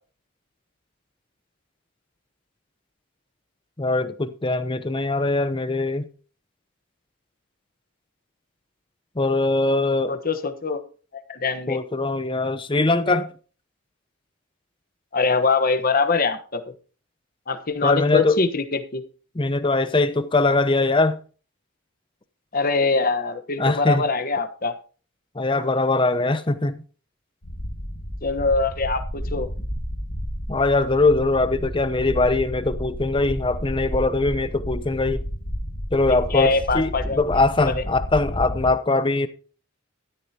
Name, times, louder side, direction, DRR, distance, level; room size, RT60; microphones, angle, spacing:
voice 1, 3.8-6.0 9.2-10.1 11.7-13.3 17.8-18.4 19.4-21.2 23.6-24.0 25.4-26.8 30.5-35.2 35.9-39.3, left 2 dB, 25° left, 0.8 m, -21 dB
voice 2, 10.1-10.8 11.3-11.8 13.1-13.2 15.1-16.6 17.5-19.0 22.5-24.7 28.2-29.5 36.1-37.2 37.8-37.9, left 4 dB, 45° left, 1.2 m, -23 dB
sound 1, 27.4-38.7, equal, 85° left, 1.9 m, -31 dB
13.5 x 12.5 x 2.9 m
head